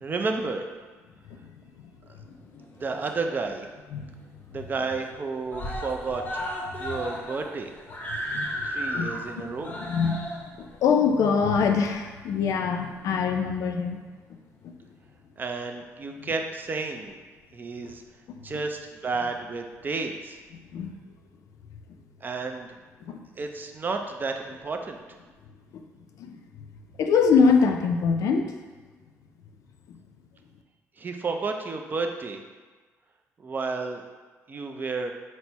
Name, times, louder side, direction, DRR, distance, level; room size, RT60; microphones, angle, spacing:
voice 1, 0.0-0.6 2.6-3.7 4.5-6.2 6.8-7.7 8.6-9.7 15.4-17.2 17.5-18.0 18.4-20.4 22.2-22.7 23.4-25.0 31.0-32.4 33.4-34.0 34.5-35.1, right 4 dB, 35° right, 4 dB, 0.4 m, -31 dB
voice 2, 2.3-2.6 3.9-4.1 8.1-9.2 9.8-14.0 14.6-14.7 17.8-17.9 18.3-18.4 20.7-20.9 23.1-23.2 25.7-25.8 26.2-26.4 27.0-28.5 29.9-30.0, left 5 dB, 75° left, 5 dB, 0.4 m, -24 dB
Screaming, 2.6-3.5 3.9-4.0 4.3-4.4 4.7-5.2 5.5-12.3 13.2-13.3, equal, 30° left, 0.6 m, -35 dB
4.2 x 2.1 x 4.4 m, 1.4 s
cardioid pair, 105°, 6 cm